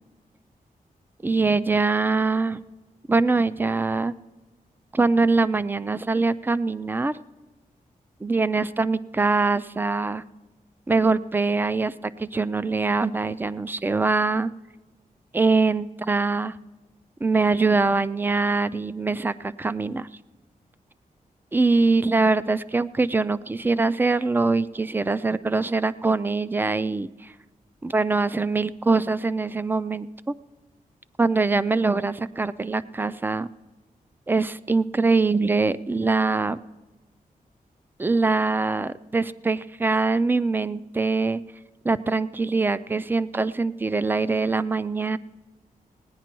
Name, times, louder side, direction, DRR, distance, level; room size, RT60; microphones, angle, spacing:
voice 1, 1.2-2.6 3.1-4.1 4.9-7.1 8.2-10.2 10.9-14.5 15.3-16.6 17.2-20.1 21.5-27.3 27.8-30.3 31.2-33.5 34.3-36.6 38.0-41.4 41.8-45.2, right 3 dB, 15° right, 15 dB, 0.3 m, -23 dB
18.0 x 10.0 x 4.5 m, 1.2 s
wide cardioid pair, 150°, 15 cm